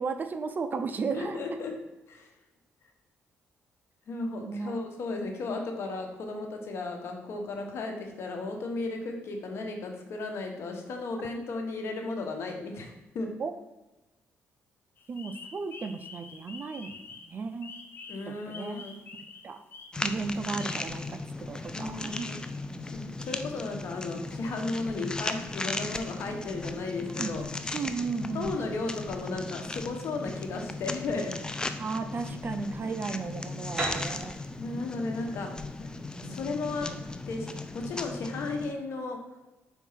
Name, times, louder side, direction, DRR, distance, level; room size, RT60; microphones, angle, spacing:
voice 1, 0.0-1.4 4.5-4.8 13.4-13.5 15.1-17.7 18.3-18.9 19.4-19.6 20.0-22.3 27.0-27.3 27.7-28.5 31.8-34.4 36.2-37.0, right 4 dB, 40° right, 8 dB, 0.6 m, -35 dB
voice 2, 1.1-1.7 2.1-2.3 4.1-13.3 18.1-18.9 21.7-22.4 22.9-27.4 28.3-31.3 34.6-35.5 35.8-35.9 36.2-36.9 37.2-39.2, left 3 dB, 65° left, 3 dB, 1.3 m, -35 dB
sound 1, 15.0-21.1, left 4 dB, 50° left, 1.0 m, -47 dB
sound 2, 19.9-38.7, left 2 dB, 15° left, 0.5 m, -37 dB
Piano, 33.8-37.4, right 2 dB, 15° right, 2.1 m, -38 dB
4.5 x 4.5 x 5.7 m, 1.0 s
cardioid pair, 95°, 5 cm